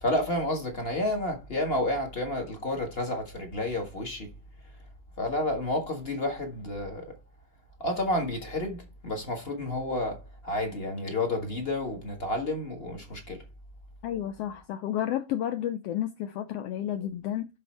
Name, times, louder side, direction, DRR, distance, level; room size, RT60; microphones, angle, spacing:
voice 1, 0.0-4.3 5.2-7.1 7.8-10.2 10.4-13.4, left 1 dB, 35° left, 1.0 m, -30 dB
voice 2, 14.0-17.5, left 11 dB, 85° left, 1.3 m, -31 dB
11.0 x 4.1 x 4.3 m
omnidirectional pair, 3.4 m